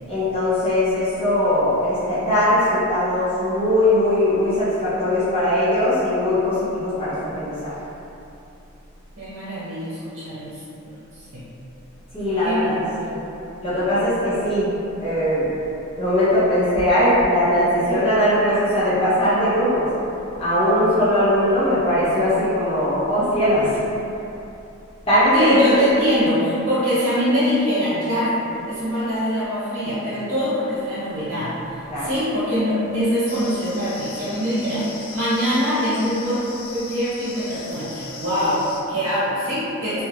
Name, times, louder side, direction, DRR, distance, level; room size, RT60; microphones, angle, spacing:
voice 1, 0.1-7.7 12.1-13.2 13.6-14.7 15.0-15.5 16.0-19.9 20.4-23.8 25.1-25.9 31.9-32.1, left 1 dB, 25° left, -12 dB, 0.6 m, -20 dB
voice 2, 9.2-10.6 11.3-11.4 12.4-12.8 25.3-31.5 32.0-36.5 36.7-40.0, equal, 80° right, -12 dB, 1.0 m, -23 dB
sound 1, 33.3-38.8, left 4 dB, 80° left, 0.4 m, -39 dB
2.3 x 2.0 x 3.1 m, 2.8 s
head